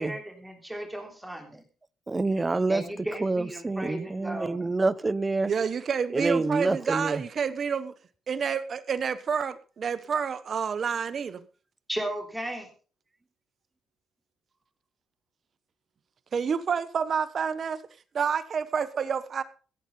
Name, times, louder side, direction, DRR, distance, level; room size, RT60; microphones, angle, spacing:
voice 1, 0.0-1.6 2.7-4.7 11.9-12.7, right 1 dB, 5° right, 3 dB, 3.6 m, -35 dB
voice 2, 2.1-2.8 3.2-5.5 6.1-7.2, right 3 dB, 20° right, 18 dB, 0.8 m, -27 dB
voice 3, 5.4-7.9 8.3-11.4 16.3-17.8 18.1-19.4, right 6 dB, 50° right, 14 dB, 1.2 m, -29 dB
16.0 x 9.1 x 5.5 m, 0.38 s
cardioid pair, 90°, 0 cm